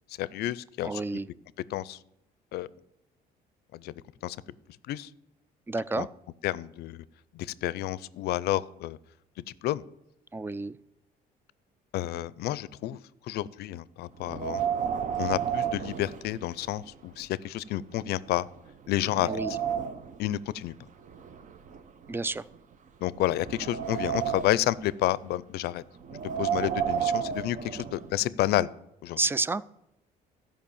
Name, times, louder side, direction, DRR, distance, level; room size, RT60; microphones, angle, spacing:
voice 1, 0.2-1.0 1.7-2.0 2.5-2.7 3.7-3.9 4.2-4.4 4.9-5.1 5.9-6.1 6.4-7.0 7.3-9.0 9.6-9.8 11.9-13.0 13.3-14.6 15.2-18.5 18.9-19.3 20.2-20.7 23.0-25.8 26.4-28.7 29.0-29.2, left 14 dB, 70° left, 19 dB, 0.5 m, -30 dB
voice 2, 0.8-1.3 5.7-6.1 10.3-10.8 19.3-19.5 22.1-22.4 29.2-29.6, right 3 dB, 15° right, 19 dB, 0.3 m, -30 dB
Wind, 14.2-16.8 17.2-17.3 18.0-18.1 18.6-20.2 21.0-22.6 23.1-24.7 26.0-28.1, right 8 dB, 50° right, 0.8 m, -32 dB
13.0 x 5.4 x 7.0 m, 0.84 s
cardioid pair, 110°, 17 cm